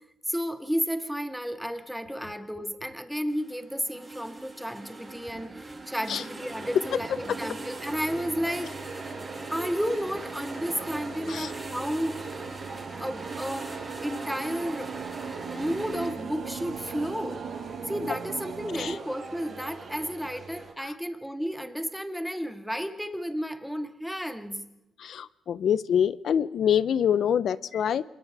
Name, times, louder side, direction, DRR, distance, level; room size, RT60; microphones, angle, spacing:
voice 1, 0.3-8.8 9.5-12.3 13.0-15.1 15.5-17.4 17.8-24.7, equal, ahead, 8 dB, 1.8 m, -32 dB
sound 1, 3.3-16.1, right 3 dB, 25° right, 5.7 m, -41 dB
sound 2, 6.5-20.7, right 4 dB, 50° right, 7.2 m, -42 dB
sound 3, 8.7-19.0, right 7 dB, 80° right, 1.5 m, -41 dB
voice 2, 25.0-28.0, left 8 dB, 65° left, 17 dB, 0.7 m, -25 dB
27.0 x 21.5 x 4.9 m, 0.94 s
cardioid pair, 110°, 0 cm